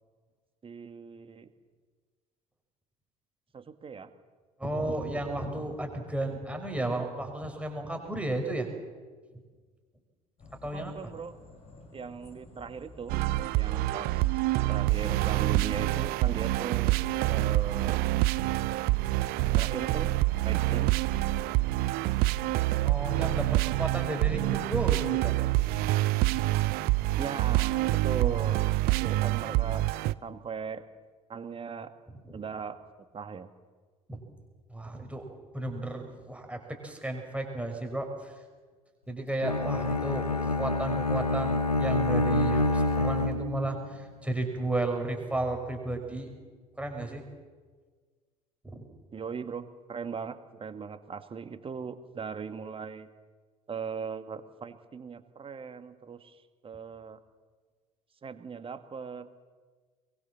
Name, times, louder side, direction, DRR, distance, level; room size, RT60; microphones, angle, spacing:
voice 1, 0.6-1.5 3.5-4.1 10.6-11.3 11.9-13.2 13.5-14.3 14.7-17.0 17.3-18.1 19.6-20.1 20.4-20.9 27.2-29.8 30.2-30.8 31.3-31.9 32.3-32.8 33.1-33.5 49.1-53.1 53.7-57.2 58.2-59.3, right 6 dB, 30° right, 10 dB, 1.9 m, -38 dB
voice 2, 4.6-8.7 10.6-10.9 22.8-25.4 28.2-28.5 32.1-32.4 34.1-34.2 34.7-35.3 35.5-38.4 39.1-46.3 46.8-47.2 48.6-48.9, right 1 dB, 5° right, 3 dB, 5.8 m, -33 dB
sound 1, 10.4-26.1, left 1 dB, 30° left, 5.7 m, -52 dB
sound 2, 13.1-30.1, right 18 dB, 55° right, 0.6 m, -26 dB
Bowed string instrument, 39.4-43.8, left 2 dB, 90° left, 0.9 m, -27 dB
23.0 x 22.5 x 7.2 m, 1.5 s
figure-of-eight pair, 60°, 19 cm